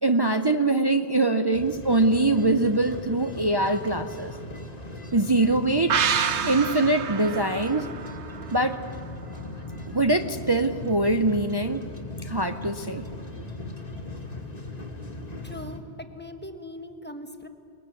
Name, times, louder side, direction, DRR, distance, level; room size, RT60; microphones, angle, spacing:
voice 1, 0.0-4.3 5.1-6.0 6.4-7.9 8.5-8.8 9.9-11.8 12.2-13.0, right 2 dB, 30° right, 7 dB, 0.5 m, -23 dB
sound 1, 1.5-15.8, left 2 dB, 35° left, 2.0 m, -38 dB
sound 2, 5.9-9.4 9.7-9.8, right 7 dB, 80° right, 1.2 m, -29 dB
voice 2, 15.4-17.5, left 1 dB, 10° left, 6 dB, 1.1 m, -40 dB
21.0 x 21.0 x 8.4 m, 2.6 s
omnidirectional pair, 1.1 m